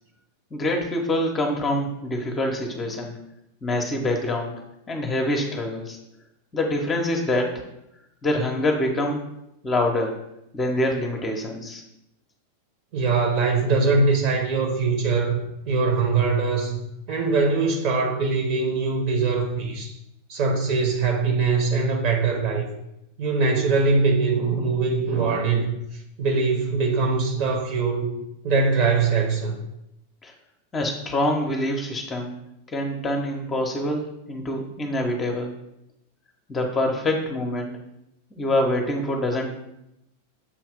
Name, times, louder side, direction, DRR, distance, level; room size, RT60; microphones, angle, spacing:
voice 1, 0.5-3.2 3.6-4.6 4.9-6.0 6.5-7.5 8.2-9.2 9.6-10.2 10.5-11.8 30.2-30.3 30.7-32.3 32.7-35.5 36.5-37.7 38.3-39.5, left 1 dB, 20° left, 2 dB, 0.9 m, -25 dB
voice 2, 12.9-15.4 15.7-16.8 17.1-19.9 20.3-22.7 23.2-25.7 26.2-28.1 28.4-29.6, right 4 dB, 40° right, 2 dB, 1.2 m, -22 dB
7.2 x 2.9 x 5.0 m, 0.84 s
figure-of-eight pair, 90°, 0 cm